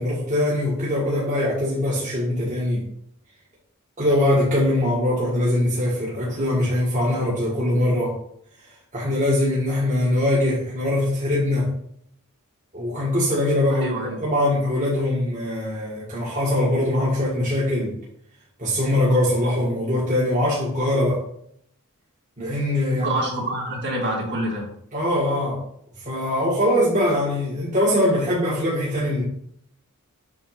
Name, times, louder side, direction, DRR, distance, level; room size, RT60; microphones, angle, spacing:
voice 1, 0.0-2.8 4.0-8.2 8.9-11.7 12.7-17.9 18.6-21.2 22.4-23.1 24.9-25.6 26.0-29.2, left 1 dB, 35° right, -7 dB, 1.7 m, -22 dB
voice 2, 13.7-14.2 22.9-24.7, right 1 dB, 50° right, -4 dB, 2.4 m, -27 dB
7.6 x 2.7 x 5.7 m, 0.67 s
head